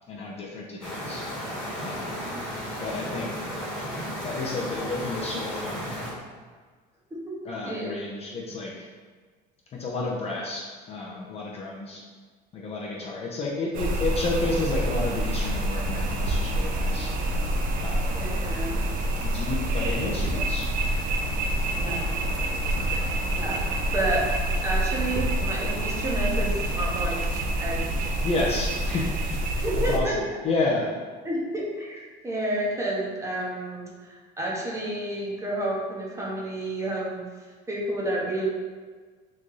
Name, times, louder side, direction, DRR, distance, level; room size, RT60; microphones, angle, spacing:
voice 1, 0.1-1.2 1.8-2.2 2.8-3.3 4.2-6.0 7.4-8.9 9.7-12.0 12.5-17.1 17.8-18.2 19.2-21.1 22.8-23.1 28.2-29.4 29.9-30.9, left 2 dB, 30° left, -3 dB, 0.5 m, -31 dB
sound 1, 0.8-6.1, equal, 5° left, 1.1 m, -34 dB
voice 2, 7.6-7.9 18.0-18.8 21.7-22.0 23.3-23.6 23.9-24.3 24.6-27.2 27.6-28.0 29.6-30.2 31.2-37.3 37.7-38.5, right 1 dB, 15° right, -4 dB, 0.8 m, -30 dB
sound 2, 13.7-30.0, right 1 dB, 45° right, 0.5 m, -27 dB
3.1 x 2.6 x 3.7 m, 1.5 s
cardioid pair, 125°, 20 cm